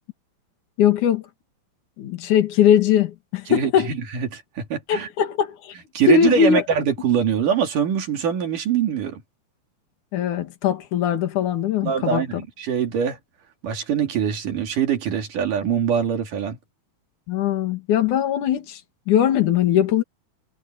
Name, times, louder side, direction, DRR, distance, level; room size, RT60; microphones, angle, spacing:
voice 1, 0.8-1.2 2.0-3.9 4.9-5.7 6.1-6.6 10.1-12.4 17.3-18.8 19.1-20.0, left 9 dB, 70° left, 3.4 m, -20 dB
voice 2, 3.5-5.1 5.9-9.2 11.8-13.2 13.6-16.6, right 8 dB, 80° right, 4.2 m, -23 dB
omnidirectional pair, 3.6 m